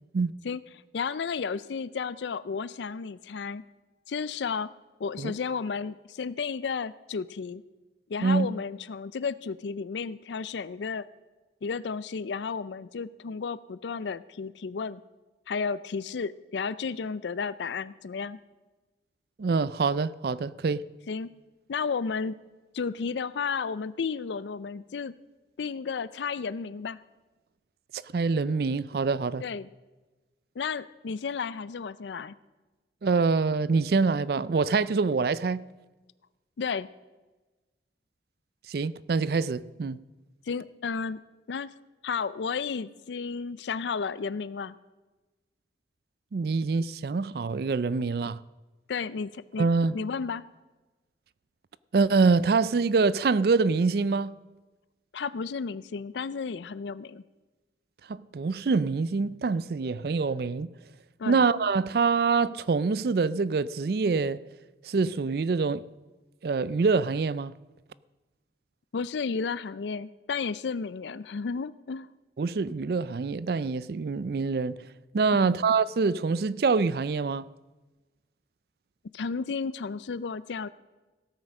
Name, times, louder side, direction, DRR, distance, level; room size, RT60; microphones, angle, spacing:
voice 1, 0.9-3.6 4.1-4.7 5.0-7.6 8.1-11.1 11.6-15.0 15.5-18.4 21.1-21.3 21.7-22.4 22.7-25.1 25.6-27.0 29.4-29.7 30.6-32.4 36.6-36.9 40.5-41.2 41.5-41.7 42.0-44.7 48.9-49.7 49.9-50.4 55.1-57.2 61.2-61.4 68.9-72.1 75.3-75.6 79.1-80.7, left 5 dB, 80° left, 0.4 m, -32 dB
voice 2, 19.4-20.8 27.9-29.4 33.0-35.7 38.7-40.0 46.3-48.4 49.6-50.0 51.9-54.4 58.3-60.7 61.3-64.4 64.8-65.8 66.4-67.5 72.4-74.8 75.1-77.5, right 4 dB, 60° right, 0.4 m, -25 dB
16.5 x 9.0 x 6.4 m
head